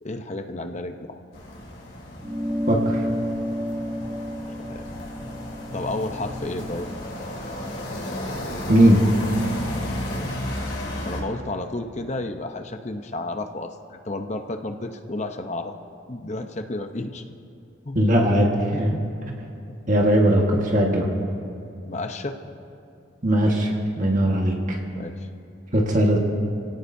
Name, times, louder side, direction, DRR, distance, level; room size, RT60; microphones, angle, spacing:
voice 1, 0.0-1.2 4.6-4.8 5.7-6.9 10.1-10.3 11.0-15.7 16.1-17.2 17.8-18.1 18.7-19.0 20.8-21.3 21.9-22.4 24.2-24.4 24.9-25.3, left 2 dB, 35° left, 6 dB, 0.8 m, -32 dB
sound 1, 1.3-11.2, left 1 dB, 50° left, 3.4 m, -33 dB
sound 2, 2.2-7.0, equal, 10° right, 0.5 m, -31 dB
voice 2, 2.7-3.0 8.7-9.1 17.9-18.9 19.9-21.1 23.2-23.7 24.0-24.8 25.7-26.2, equal, 40° right, -1 dB, 1.6 m, -19 dB
29.5 x 17.0 x 2.7 m, 2.6 s
head